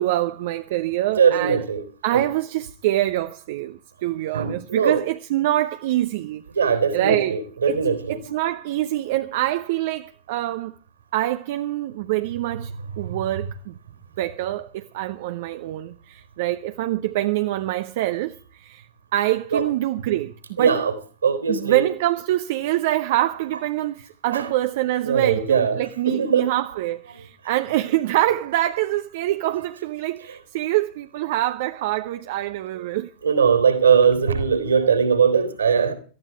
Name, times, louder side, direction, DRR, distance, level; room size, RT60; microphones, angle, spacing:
voice 1, 0.0-1.7 2.0-7.4 7.7-10.7 11.1-13.8 14.2-18.9 19.1-20.8 21.5-33.1, right 15 dB, 55° right, 0.8 m, -25 dB
voice 2, 1.2-1.8 2.1-2.2 4.3-5.0 6.5-8.3 13.0-13.2 19.5-19.6 20.6-20.9 21.2-21.9 24.3-24.5 25.0-25.8 26.0-26.5 32.7-32.8 33.2-35.9, right 6 dB, 70° right, 3.4 m, -20 dB
18.5 x 14.0 x 4.6 m
figure-of-eight pair, 90°, 0 cm